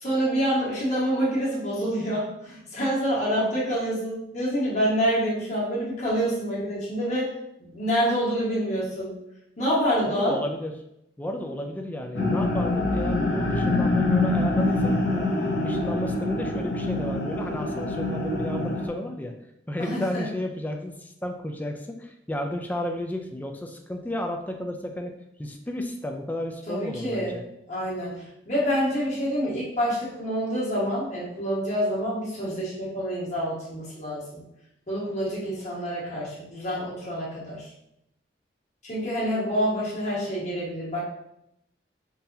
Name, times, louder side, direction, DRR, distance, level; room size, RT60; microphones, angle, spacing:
voice 1, 0.0-7.3 7.6-9.2 9.6-10.4 19.8-20.2 26.7-27.4 27.7-34.4 34.9-37.7 38.8-41.0, equal, 45° left, -7 dB, 1.4 m, -27 dB
voice 2, 10.1-10.7 11.2-19.3 19.7-27.4, left 1 dB, 10° left, 3 dB, 0.3 m, -33 dB
sound 1, 12.1-18.9, left 2 dB, 75° left, 0.7 m, -25 dB
3.8 x 2.8 x 2.6 m, 0.80 s
head